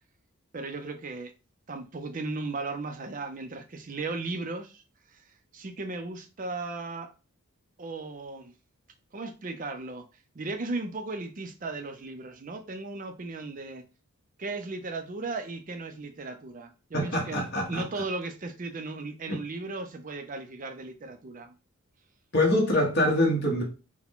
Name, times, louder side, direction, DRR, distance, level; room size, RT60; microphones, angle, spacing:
voice 1, 0.5-1.3 1.7-4.8 5.1-7.1 7.8-8.5 9.1-10.1 10.3-13.8 14.4-21.5, right 3 dB, 35° right, 0.5 m, -36 dB
voice 2, 16.9-17.8 19.3-19.4 22.3-23.6, left 1 dB, 50° left, 1.2 m, -24 dB
4.7 x 2.2 x 3.6 m
head